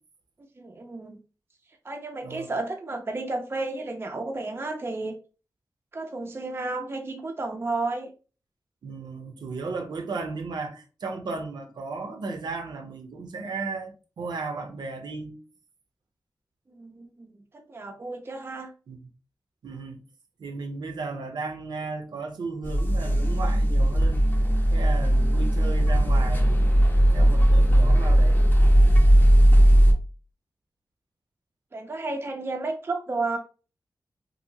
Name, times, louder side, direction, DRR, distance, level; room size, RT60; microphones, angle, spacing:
voice 1, 0.6-1.2 1.8-5.2 5.9-8.1 16.7-17.3 17.5-18.7 31.7-33.4, right 3 dB, 35° right, 0.4 m, -32 dB
voice 2, 8.8-15.4 18.9-19.0 19.6-20.0 20.4-24.2 24.7-26.6 27.1-28.5, right 4 dB, 90° right, 0.5 m, -35 dB
sound 1, 22.6-29.9, equal, 30° left, 0.6 m, -18 dB
2.8 x 2.6 x 2.7 m
wide cardioid pair, 75°, 7 cm